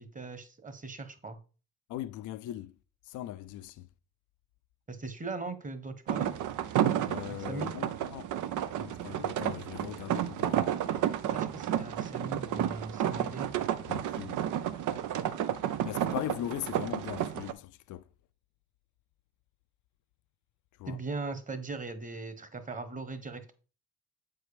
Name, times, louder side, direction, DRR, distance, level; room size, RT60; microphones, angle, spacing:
voice 1, 0.0-1.4 4.9-6.3 7.4-7.8 11.3-13.5 20.9-23.5, right 3 dB, 25° right, 1.3 m, -39 dB
voice 2, 1.9-2.7 3.1-3.9 7.1-8.3 8.8-10.7 13.9-14.4 15.9-18.1 20.8-21.0, left 13 dB, 80° left, 0.5 m, -39 dB
sound 1, 6.1-17.5, right 10 dB, 80° right, 0.7 m, -31 dB
7.7 x 4.7 x 5.0 m
cardioid pair, 90°, 30 cm